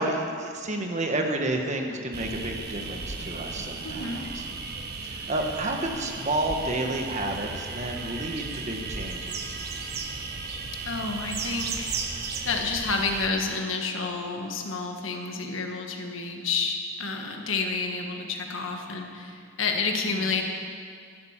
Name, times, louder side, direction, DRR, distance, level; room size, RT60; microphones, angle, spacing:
voice 1, 0.0-4.4 5.0-9.6 20.0-20.2, right 1 dB, 35° right, 3 dB, 1.4 m, -30 dB
sound 1, 2.1-13.3, right 4 dB, 50° right, 1.3 m, -35 dB
voice 2, 3.8-4.3 10.8-12.1 12.4-20.4, left 4 dB, 80° left, 2 dB, 1.6 m, -30 dB
sound 2, 6.1-11.6, equal, 5° right, 4.7 m, -54 dB
12.0 x 11.0 x 7.4 m, 2.2 s
head